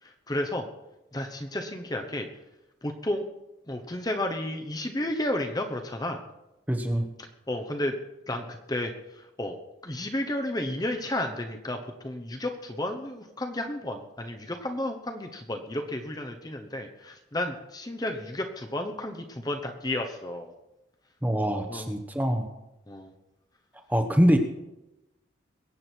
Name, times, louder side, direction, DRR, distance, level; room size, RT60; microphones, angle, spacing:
voice 1, 0.3-0.6 1.1-2.3 2.8-3.2 3.7-6.2 7.5-7.9 8.3-8.9 9.4-9.5 9.8-11.8 12.0-20.5 21.7-21.9 22.9-23.1, left 1 dB, 20° left, 4 dB, 0.9 m, -32 dB
voice 2, 6.7-7.1 21.2-22.5 23.9-24.4, equal, 10° right, 4 dB, 1.1 m, -24 dB
22.0 x 8.8 x 4.5 m, 0.94 s
head